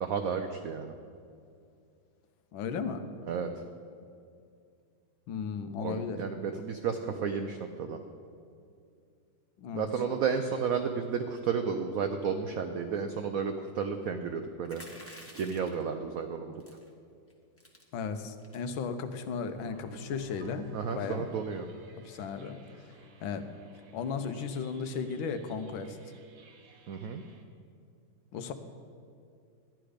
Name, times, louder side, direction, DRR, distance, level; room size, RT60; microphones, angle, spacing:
voice 1, 0.0-0.9 3.3-3.5 5.8-8.0 9.7-14.8 15.3-16.5 20.7-21.7 26.9-27.2, right 6 dB, 85° right, 6 dB, 0.7 m, -32 dB
voice 2, 2.5-3.1 5.3-6.2 9.6-9.9 17.9-20.7 20.9-21.3 22.0-22.9 23.2-23.5 23.9-26.0 28.3-28.5, left 5 dB, 80° left, 9 dB, 1.5 m, -35 dB
sound 1, 14.6-15.8 16.6-16.9 17.3-17.4 17.6-17.8 18.4-18.7, left 1 dB, 10° left, 0.9 m, -49 dB
sound 2, 19.5-27.4, equal, 55° right, 1.3 m, -52 dB
12.5 x 9.9 x 5.0 m, 2.4 s
omnidirectional pair, 2.2 m